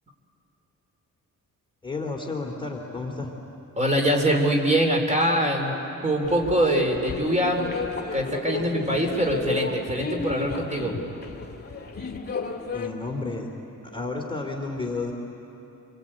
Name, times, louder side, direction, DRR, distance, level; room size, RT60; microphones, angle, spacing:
voice 1, 1.8-3.3 12.7-13.5 13.9-15.1, left 3 dB, 15° left, 0 dB, 3.1 m, -31 dB
voice 2, 3.8-5.7 6.0-7.7 8.1-10.9, right 1 dB, 20° right, 2 dB, 3.8 m, -23 dB
sound 1, 6.2-12.9, left 4 dB, 30° left, 2.4 m, -33 dB
27.5 x 23.5 x 8.9 m, 3.0 s
cardioid pair, 100°, 33 cm